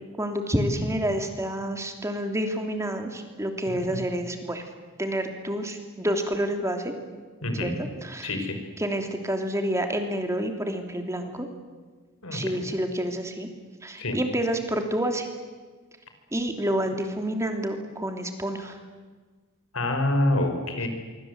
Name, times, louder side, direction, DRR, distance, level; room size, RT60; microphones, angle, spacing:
voice 1, 0.2-4.6 5.0-6.9 7.6-7.7 8.0-8.5 8.8-11.5 12.3-13.5 13.8-15.3 16.3-18.8 20.8-20.9, right 1 dB, 15° right, 5 dB, 3.0 m, -28 dB
voice 2, 7.4-7.8 8.2-8.6 12.2-12.7 14.0-14.2 19.7-20.9, left 1 dB, 80° left, 6 dB, 4.9 m, -27 dB
26.0 x 24.5 x 8.0 m, 1.4 s
head